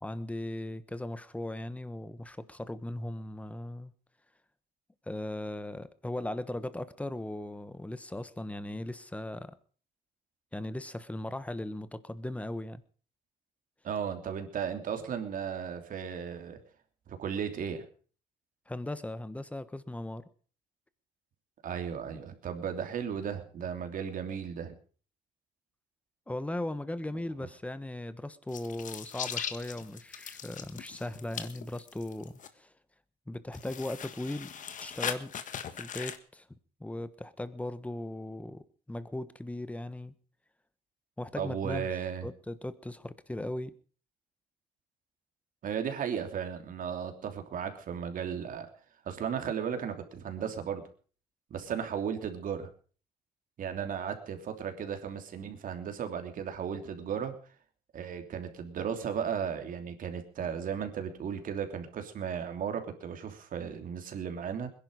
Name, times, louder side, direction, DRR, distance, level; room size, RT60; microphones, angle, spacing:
voice 1, 0.0-3.9 5.1-9.5 10.5-12.8 18.7-20.2 26.3-32.7 33.3-34.5 34.8-35.3 35.7-36.4 36.8-40.1 41.2-41.9 42.2-43.7, left 1 dB, 10° left, 14 dB, 1.3 m, -38 dB
voice 2, 13.8-16.6 17.1-17.8 21.6-24.7 41.4-42.3 45.6-48.7 49.0-50.8 51.5-52.7 53.6-57.3 57.9-64.7, right 7 dB, 55° right, 6 dB, 3.1 m, -35 dB
sound 1, 28.5-32.5 33.5-36.2, left 8 dB, 50° left, 1.6 m, -39 dB
21.0 x 11.0 x 5.0 m, 0.41 s
cardioid pair, 110°, 17 cm